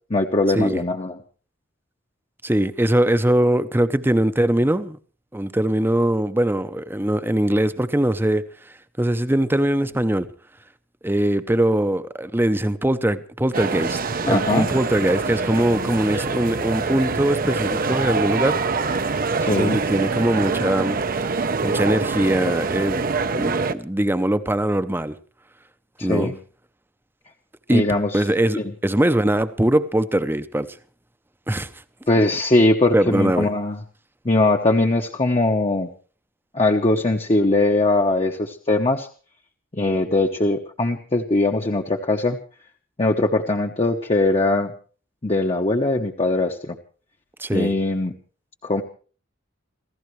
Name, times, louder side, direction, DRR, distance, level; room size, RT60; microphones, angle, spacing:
voice 1, 0.1-1.2 14.3-14.7 19.4-19.8 26.0-26.4 27.7-28.2 28.6-28.7 32.1-33.8 34.2-35.9 36.5-39.1 39.7-42.4 43.0-44.7 45.2-46.8 47.5-48.1 48.6-48.8, left 2 dB, 30° left, 1.0 m, -21 dB
voice 2, 2.4-5.0 5.3-8.5 9.0-10.3 11.0-14.0 14.2-18.6 19.5-21.0 21.6-23.1 23.4-25.1 26.0-26.3 27.7-27.8 28.1-30.8 31.5-31.7 32.9-33.5 47.4-47.7, right 1 dB, 10° right, 0.7 m, -21 dB
sound 1, 13.5-23.7, right 4 dB, 45° right, 0.7 m, -25 dB
28.5 x 15.0 x 3.2 m
head